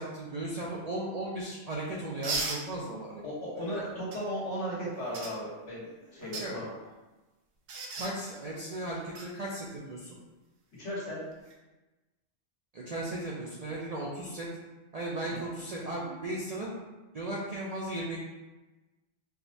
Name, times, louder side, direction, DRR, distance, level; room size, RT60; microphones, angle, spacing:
voice 1, 0.0-3.2 3.5-3.8 6.2-6.6 7.9-10.2 12.7-14.5 14.9-16.8 17.1-18.2, right 1 dB, 60° right, -5 dB, 0.4 m, -36 dB
sound 1, 2.2-2.6 4.1-4.2 5.1-5.3 6.2-6.5 7.7-8.1 9.1-9.3 11.3-11.5, right 3 dB, 75° right, 0.9 m, -34 dB
voice 2, 3.2-6.7 10.8-11.2, equal, 80° left, -6 dB, 1.4 m, -36 dB
4.5 x 2.1 x 2.6 m, 1.1 s
omnidirectional pair, 1.2 m